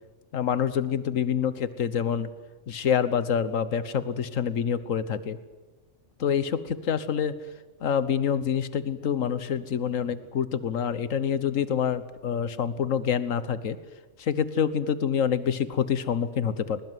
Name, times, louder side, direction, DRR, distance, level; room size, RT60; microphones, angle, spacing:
voice 1, 0.3-2.3 2.7-5.4 6.2-7.3 7.8-13.8 14.2-16.8, left 8 dB, 85° left, 14 dB, 1.5 m, -26 dB
22.0 x 20.5 x 9.3 m, 1.2 s
omnidirectional pair, 1.3 m